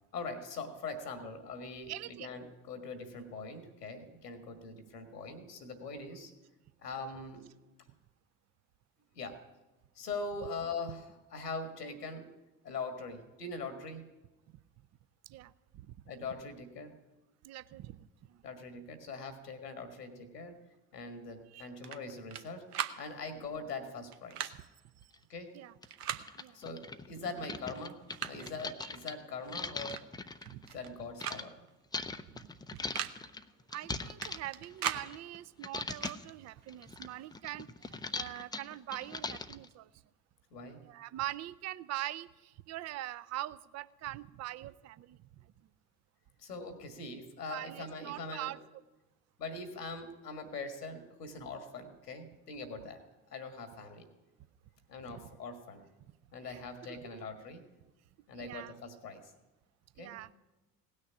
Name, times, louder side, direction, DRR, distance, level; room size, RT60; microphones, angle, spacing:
voice 1, 0.1-6.3 6.8-7.5 9.1-9.4 10.0-12.3 12.6-14.0 16.1-16.9 18.4-20.6 20.9-22.7 23.0-24.5 25.3-25.5 26.5-28.0 28.3-30.0 30.7-31.6 40.5-40.8 46.4-48.5 49.4-53.0 53.3-54.1 54.9-55.9 56.3-57.6 58.3-59.3 60.0-60.2, left 3 dB, 80° left, 8 dB, 1.7 m, -42 dB
voice 2, 1.9-2.4 15.3-16.0 17.4-18.4 21.5-21.7 25.5-25.7 26.1-26.6 28.8-28.9 30.5-30.6 32.4-32.8 33.7-39.9 40.8-45.2 47.5-48.6 55.0-55.2 56.4-56.6 56.9-57.3 58.4-58.7 60.0-60.3, right 15 dB, 35° right, 17 dB, 0.6 m, -43 dB
sound 1, 21.8-22.4 22.7-23.0 24.1-24.6 25.8-26.2 27.3-27.4 27.9-28.5 29.9-30.0 30.3-30.9 31.2-31.4 31.7-31.8 32.7-33.1 34.2-35.1 35.9-36.2, right 10 dB, 75° right, 0.9 m, -38 dB
sound 2, 25.1-25.2 25.8-25.9 26.2-31.4 31.9-35.4 35.6-36.3 36.7-39.7, left 3 dB, 10° left, 0.5 m, -41 dB
17.5 x 6.4 x 9.8 m, 1.1 s
figure-of-eight pair, 60°, 47 cm